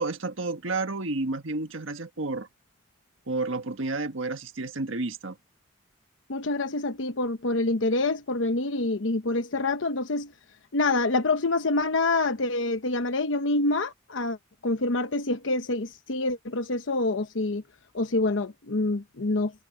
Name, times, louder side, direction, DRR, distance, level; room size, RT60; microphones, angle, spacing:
voice 1, 0.0-2.5 3.3-5.4, right 3 dB, 85° right, 1.6 m, -31 dB
voice 2, 6.3-10.3 10.7-14.4 14.6-17.6 17.9-19.5, left 2 dB, 80° left, 1.0 m, -26 dB
head